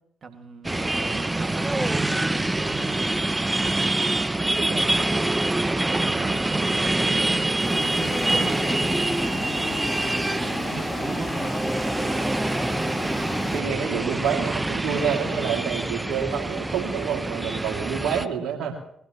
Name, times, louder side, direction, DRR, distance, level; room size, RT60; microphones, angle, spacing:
voice 1, 0.2-3.7 4.5-4.9 5.9-9.8 10.3-11.7, right 4 dB, 50° right, 5 dB, 2.1 m, -37 dB
sound 1, 0.6-18.3, right 2 dB, 15° right, 0.7 m, -25 dB
sound 2, 6.6-12.1, left 1 dB, 15° left, 6.2 m, -41 dB
sound 3, 7.6-13.6, left 2 dB, 35° left, 3.9 m, -33 dB
voice 2, 13.5-18.8, right 7 dB, 70° right, 1 dB, 2.5 m, -28 dB
22.0 x 16.5 x 3.1 m, 0.73 s
hypercardioid pair, 45°, 0 cm